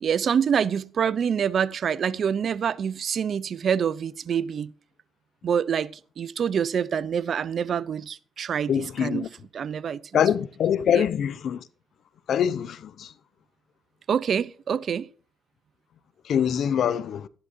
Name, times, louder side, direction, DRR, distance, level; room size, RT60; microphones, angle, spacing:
voice 1, 0.0-4.7 5.4-5.9 6.2-9.3 9.5-10.2 10.9-11.1 14.1-15.1, right 7 dB, 55° right, 0.5 m, -26 dB
voice 2, 8.7-9.3 10.1-11.6 12.3-13.1 16.3-17.3, left 9 dB, 65° left, 0.6 m, -24 dB
12.5 x 11.5 x 2.6 m
cardioid pair, 90°, 0 cm